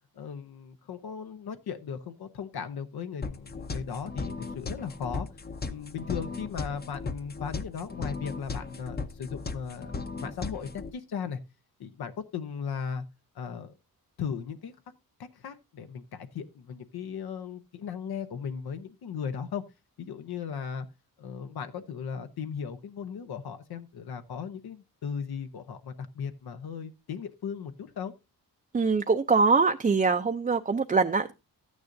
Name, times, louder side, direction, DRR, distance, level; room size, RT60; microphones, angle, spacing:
voice 1, 0.1-5.3 5.7-9.9 10.2-11.4 11.8-13.0 13.3-13.8 14.2-14.7 15.2-19.6 20.0-20.9 21.2-28.1, left 7 dB, 80° left, 0.9 m, -37 dB
sound 1, 3.2-10.9, left 4 dB, 25° left, 0.7 m, -37 dB
voice 2, 28.7-31.3, right 4 dB, 25° right, 0.5 m, -23 dB
13.0 x 9.5 x 2.6 m
cardioid pair, 100°, 37 cm